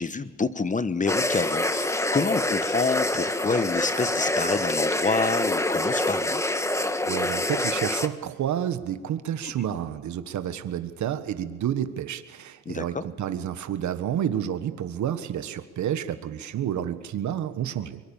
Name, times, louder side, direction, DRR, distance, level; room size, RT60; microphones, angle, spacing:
voice 1, 0.0-6.4 9.4-9.5 12.6-13.0, left 4 dB, 25° left, 13 dB, 1.2 m, -28 dB
sound 1, 1.1-8.1, left 1 dB, 10° left, 1.6 m, -26 dB
voice 2, 7.0-18.0, right 10 dB, 70° right, 10 dB, 1.6 m, -30 dB
24.0 x 23.5 x 7.3 m, 1.4 s
cardioid pair, 90°, 30 cm